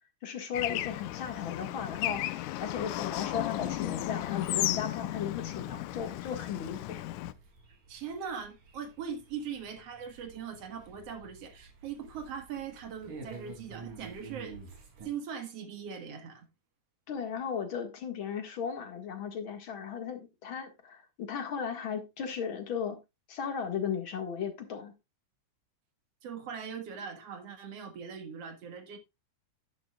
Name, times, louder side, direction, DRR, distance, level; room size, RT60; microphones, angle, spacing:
voice 1, 0.2-7.1 17.1-23.0 23.3-24.9, left 7 dB, 45° left, 2.1 m, -36 dB
Bird / Traffic noise roadway noise, 0.5-7.3, left 15 dB, 80° left, 2.1 m, -34 dB
sound 1, 5.4-15.1, right 5 dB, 90° right, 4.4 m, -50 dB
voice 2, 7.9-14.6 15.0-16.5 26.2-29.0, right 7 dB, 55° right, 2.4 m, -40 dB
11.0 x 11.0 x 2.3 m
omnidirectional pair, 3.6 m